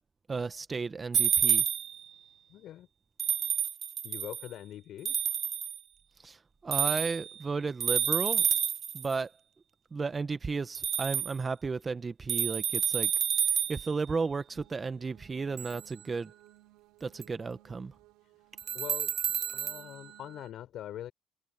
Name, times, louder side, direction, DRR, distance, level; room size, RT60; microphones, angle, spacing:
voice 1, 0.3-1.6 6.2-6.4 6.6-8.4 8.9-9.3 9.9-13.1 13.7-16.3 17.0-17.9, right 4 dB, 30° right, 1.7 m, -33 dB
sound 1, 1.1-2.0 3.2-4.5 5.0-5.8 6.7-7.3 7.8-9.1 10.7-11.3 12.3-13.9 15.6-15.8 17.2-17.3 18.6-19.8, right 9 dB, 50° right, 0.4 m, -29 dB
voice 2, 2.5-2.9 4.0-5.2 18.7-19.2 19.5-21.1, left 12 dB, 65° left, 5.2 m, -43 dB
sound 2, 14.4-20.4, right 19 dB, 80° right, 4.9 m, -60 dB
supercardioid pair, 75°, 0 cm